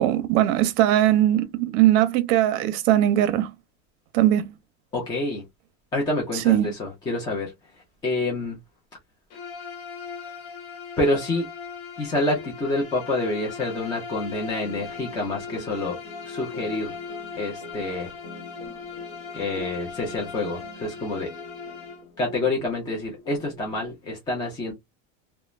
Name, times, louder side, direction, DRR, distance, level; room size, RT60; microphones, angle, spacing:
voice 1, 0.0-3.5 4.1-4.5 6.3-6.7, right 13 dB, 55° right, 0.6 m, -20 dB
voice 2, 4.9-5.4 5.9-7.5 8.0-8.6 11.0-11.5 12.0-16.0 16.2-17.0 17.4-18.1 19.3-21.3 22.2-24.7, left 2 dB, 10° left, 0.4 m, -27 dB
Bowed string instrument, 9.3-22.1, left 6 dB, 65° left, 1.0 m, -39 dB
sound 1, 14.6-23.9, left 2 dB, 45° left, 0.8 m, -43 dB
3.0 x 2.1 x 2.4 m
cardioid pair, 170°, 38 cm